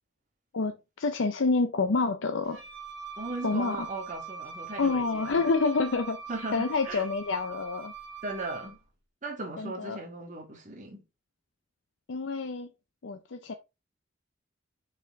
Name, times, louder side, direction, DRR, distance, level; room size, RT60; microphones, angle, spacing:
voice 1, 0.5-2.6 3.4-3.9 4.8-6.2 6.5-7.9 9.6-10.0 12.1-12.7 13.0-13.5, left 4 dB, 75° left, 0.6 m, -28 dB
Wind instrument woodwind instrument, 2.4-8.8, right 5 dB, 60° right, 2.5 m, -43 dB
voice 2, 3.2-5.4 6.3-7.0 8.2-8.8 9.2-11.0, right 2 dB, 40° right, 1.5 m, -37 dB
6.5 x 4.4 x 3.5 m
head